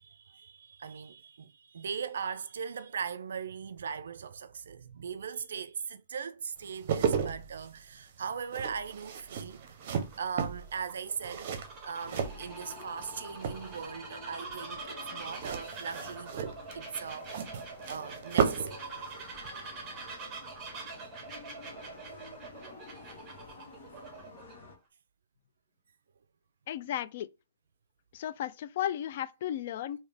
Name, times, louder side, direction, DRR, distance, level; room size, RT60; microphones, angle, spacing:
voice 1, 0.0-9.8 10.2-11.5 11.8-17.3 17.9-18.9, right 6 dB, 75° right, 0.3 m, -39 dB
sound 1, 6.6-13.1 13.4-14.0 15.3-18.8 19.1-19.2, right 7 dB, 45° right, 0.7 m, -34 dB
Bird vocalization bird call bird song, 9.5-24.5, right 4 dB, 15° right, 1.2 m, -45 dB
sound 2, 12.0-24.8, left 3 dB, 65° left, 1.3 m, -50 dB
voice 2, 26.7-27.3 28.1-30.0, left 11 dB, 45° left, 0.3 m, -34 dB
3.4 x 2.7 x 3.3 m
hypercardioid pair, 155°, 0 cm